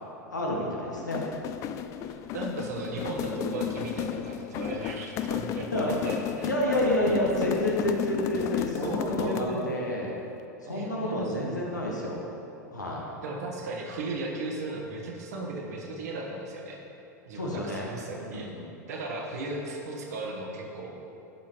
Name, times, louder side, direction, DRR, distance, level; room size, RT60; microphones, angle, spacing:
voice 1, 0.3-1.2 5.7-5.9 6.4-10.1 10.6-12.2 12.7-13.0 17.3-17.9 18.3-18.6, left 1 dB, 80° left, -3 dB, 1.5 m, -29 dB
sound 1, 1.0-9.6, left 9 dB, 35° left, 0.3 m, -33 dB
voice 2, 2.0-7.6 8.8-9.8 10.6-11.5 13.2-16.8 17.2-20.9, right 2 dB, 60° right, 0 dB, 1.3 m, -36 dB
12.5 x 5.5 x 3.0 m, 2.9 s
figure-of-eight pair, 85°, 10 cm